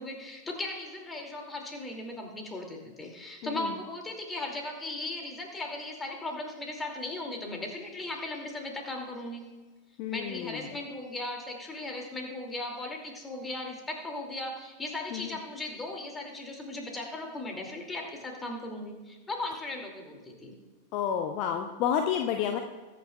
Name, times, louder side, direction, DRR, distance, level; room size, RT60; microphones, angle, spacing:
voice 1, 0.0-9.5 10.1-20.5, left 2 dB, 15° left, 2 dB, 2.5 m, -37 dB
voice 2, 3.4-3.7 10.0-10.7 15.1-15.4 20.9-22.6, left 8 dB, 40° left, 5 dB, 0.7 m, -30 dB
21.0 x 9.4 x 2.4 m, 1.3 s
figure-of-eight pair, 90°, 0 cm